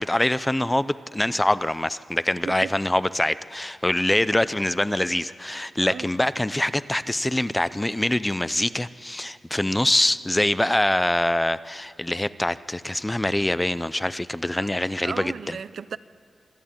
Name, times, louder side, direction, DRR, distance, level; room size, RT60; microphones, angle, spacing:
voice 1, 0.0-15.6, left 1 dB, 10° left, 0.4 m, -24 dB
voice 2, 5.8-6.1 15.0-16.0, right 6 dB, 70° right, 0.5 m, -35 dB
25.5 x 12.0 x 8.7 m
wide cardioid pair, 135°, 0 cm